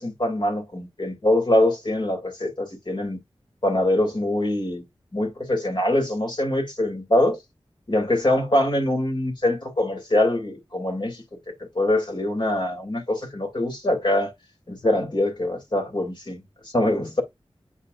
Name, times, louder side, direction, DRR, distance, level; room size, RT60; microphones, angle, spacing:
voice 1, 0.0-3.2 3.6-4.8 5.1-7.4 7.9-14.3 14.7-17.2, left 1 dB, 50° left, 3.2 m, -24 dB
8.8 x 4.3 x 2.6 m
wide cardioid pair, 60°, 10 cm